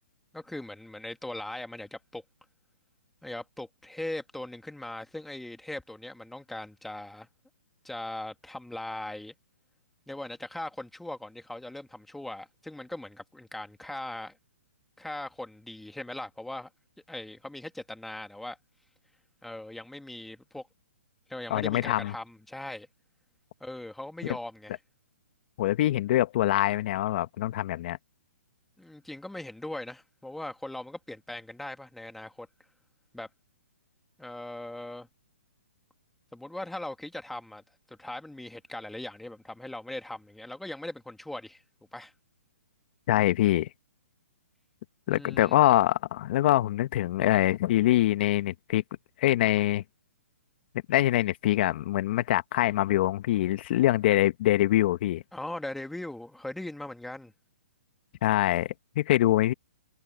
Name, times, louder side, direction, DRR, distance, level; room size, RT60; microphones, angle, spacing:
voice 1, 0.3-2.2 3.2-7.3 7.8-9.3 10.1-14.3 15.0-16.7 17.1-18.6 19.4-20.7 21.3-22.9 23.6-24.8 28.8-32.5 33.1-33.3 34.2-35.1 36.3-37.6 37.9-41.6 41.9-42.1 45.1-45.5 55.3-57.3, left 1 dB, ahead, 2.1 m, -39 dB
voice 2, 21.5-22.1 25.6-28.0 43.1-43.7 45.1-48.8 49.2-49.8 50.9-55.2 58.2-59.5, left 14 dB, 45° left, 1.4 m, -24 dB
hypercardioid pair, 145°, 8 cm